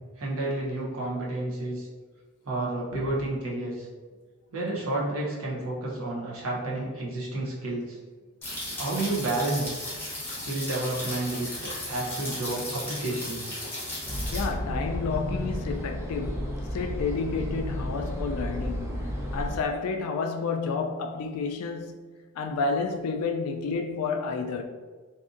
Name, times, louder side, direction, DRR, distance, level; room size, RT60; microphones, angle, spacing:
voice 1, 0.2-1.9 2.4-3.9 4.5-8.0 8.8-9.7 10.4-13.5, right 2 dB, 65° right, 0.7 m, -30 dB
sound 1, 8.4-14.4, left 1 dB, 10° left, 0.8 m, -35 dB
sound 2, 14.0-19.6, equal, 10° right, 0.3 m, -32 dB
voice 2, 14.3-22.1 22.4-24.6, left 4 dB, 75° left, 0.3 m, -30 dB
2.6 x 2.5 x 2.5 m
head